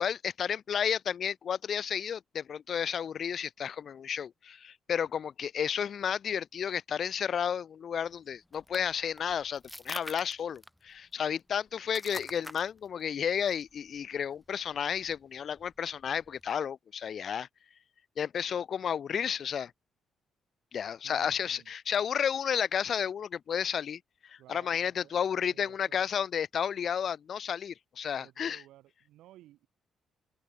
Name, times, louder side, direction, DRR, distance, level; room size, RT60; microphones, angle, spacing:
voice 1, 0.0-17.5 18.2-19.7 20.7-28.6, left 8 dB, 55° left, 0.8 m, -32 dB
sound 1, 7.9-16.5, left 1 dB, 5° left, 2.1 m, -49 dB
voice 2, 21.0-21.7 24.4-25.2 25.5-26.0 28.1-29.7, right 14 dB, 85° right, 7.0 m, -56 dB
open air
cardioid pair, 90°, 0 cm